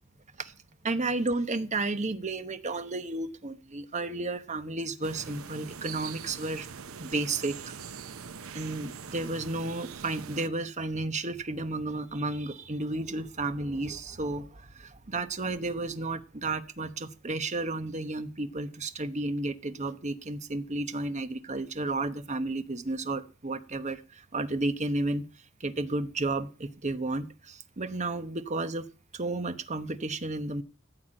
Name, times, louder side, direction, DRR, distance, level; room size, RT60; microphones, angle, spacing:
voice 1, 0.8-6.7 7.0-7.7 8.5-25.2 25.6-28.9 29.1-30.6, right 2 dB, 35° right, 11 dB, 1.0 m, -32 dB
sound 1, 5.0-10.5, right 6 dB, 75° right, 0.7 m, -43 dB
14.5 x 5.9 x 8.9 m, 0.37 s
head